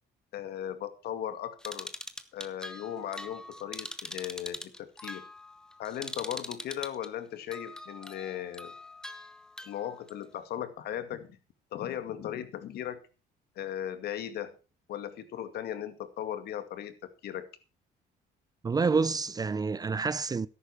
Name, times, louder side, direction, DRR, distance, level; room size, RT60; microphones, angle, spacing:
voice 1, 0.3-1.9 2.3-5.2 5.8-8.7 9.7-11.4 11.7-13.0 13.6-14.5 14.9-17.5, left 10 dB, 70° left, 2.2 m, -37 dB
sound 1, 1.6-7.1 7.5-10.1, left 1 dB, 5° left, 1.3 m, -42 dB
voice 2, 18.6-20.5, right 4 dB, 20° right, 0.6 m, -28 dB
13.5 x 11.0 x 4.6 m
cardioid pair, 110°, 17 cm